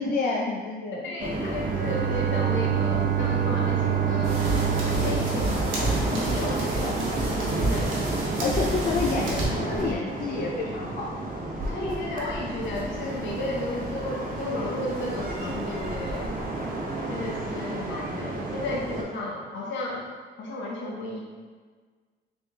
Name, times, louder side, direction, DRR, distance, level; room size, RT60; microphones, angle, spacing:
voice 1, 0.0-1.0 7.7-7.8 8.4-11.1, left 4 dB, 50° left, -2 dB, 0.5 m, -29 dB
voice 2, 0.9-7.1 7.6-7.9 11.7-16.3 17.1-20.1 20.4-21.2, left 2 dB, 70° left, -3 dB, 1.0 m, -33 dB
sound 1, 1.2-19.0, right 2 dB, 45° right, 0.8 m, -31 dB
Bowed string instrument, 1.5-6.5, right 11 dB, 65° right, 0.4 m, -27 dB
sound 2, 4.2-9.4, right 2 dB, 85° right, 1.0 m, -30 dB
3.5 x 3.0 x 3.5 m, 1.5 s
cardioid pair, 90°, 20 cm